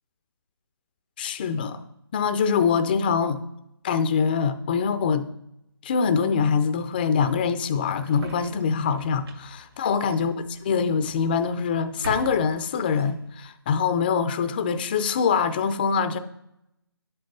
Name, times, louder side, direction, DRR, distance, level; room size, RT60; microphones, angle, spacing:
voice 1, 1.2-1.8 2.1-3.4 3.8-5.3 5.8-16.2, left 6 dB, 25° left, 11 dB, 0.5 m, -24 dB
sound 1, 5.9-13.4, right 2 dB, 70° right, 2.3 m, -45 dB
11.0 x 7.8 x 3.9 m, 0.82 s
figure-of-eight pair, 160°, 13 cm